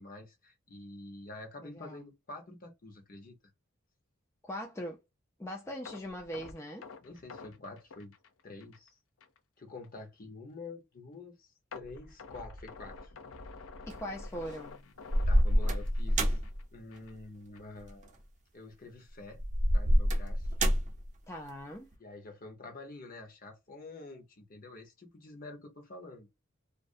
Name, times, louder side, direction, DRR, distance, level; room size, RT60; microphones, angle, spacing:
voice 1, 0.0-3.4 7.0-8.1 8.4-9.0 9.6-13.1 15.3-16.4 16.7-18.2 18.5-19.4 19.7-20.5 22.0-26.3, left 2 dB, 45° left, 0.8 m, -47 dB
voice 2, 1.6-2.0 4.4-5.0 5.4-6.9 13.9-14.8 21.3-21.9, equal, 15° left, 0.4 m, -41 dB
sound 1, 5.9-8.9 9.2-9.4 9.8-9.9 11.7-16.6 16.9-17.1 17.6-17.7, left 4 dB, 75° left, 0.5 m, -49 dB
sound 2, 13.9-14.4 15.1-16.6 17.9-18.0 19.4-21.1, equal, 40° right, 0.6 m, -26 dB
2.5 x 2.0 x 2.5 m
head